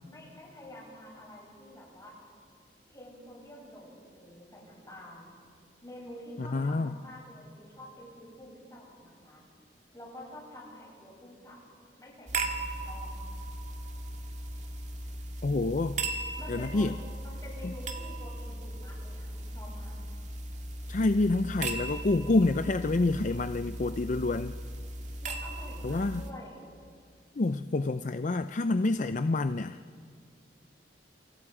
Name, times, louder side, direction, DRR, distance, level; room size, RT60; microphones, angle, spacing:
voice 1, 0.1-2.1 2.9-5.3 5.8-9.4 9.9-11.6 12.0-13.1 16.4-16.9 17.2-20.0 25.2-26.6, left 1 dB, 20° left, -4 dB, 8.0 m, -48 dB
voice 2, 6.4-7.0 15.4-16.0 16.5-16.9 17.6-17.7 20.9-24.6 25.8-26.2 27.4-29.8, left 2 dB, 45° left, 10 dB, 0.5 m, -28 dB
sound 1, 12.3-26.3, right 2 dB, 45° right, 2.0 m, -37 dB
28.5 x 28.5 x 4.9 m, 2.2 s
head